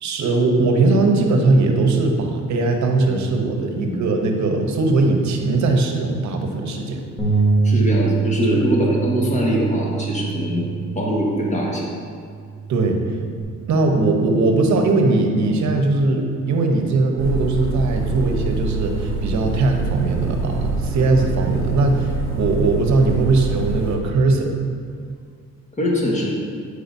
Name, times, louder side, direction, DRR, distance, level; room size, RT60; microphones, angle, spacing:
voice 1, 0.0-7.0 12.7-13.0 13.7-22.1 22.4-24.5, right 3 dB, 70° right, 3 dB, 0.9 m, -19 dB
voice 2, 3.7-4.0 7.6-10.7 10.9-11.9 25.8-26.3, equal, 25° left, -3 dB, 1.5 m, -22 dB
Bass guitar, 7.2-13.4, right 4 dB, 5° left, 1.4 m, -24 dB
sound 1, 17.2-24.0, right 3 dB, 45° right, 1.3 m, -25 dB
8.2 x 4.8 x 2.7 m, 2.1 s
cardioid pair, 90°, 30 cm